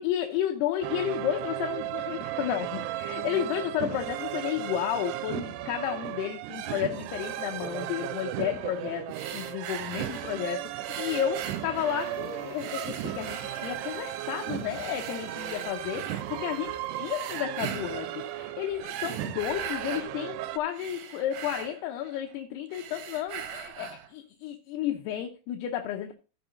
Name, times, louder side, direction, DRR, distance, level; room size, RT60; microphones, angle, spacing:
voice 1, 0.0-9.1 9.3-26.1, left 11 dB, 85° left, 3 dB, 2.9 m, -32 dB
sound 1, 0.8-20.6, right 13 dB, 90° right, 2.8 m, -35 dB
sound 2, 9.1-10.4 10.8-12.2 12.6-14.1 14.7-16.3 17.0-18.1 18.7-20.1 20.5-22.4 22.7-24.1, right 8 dB, 65° right, 2.5 m, -41 dB
Toilet flush, 11.4-18.5 18.8-18.9, left 5 dB, 60° left, 3.2 m, -55 dB
14.5 x 6.0 x 4.0 m, 0.33 s
omnidirectional pair, 4.7 m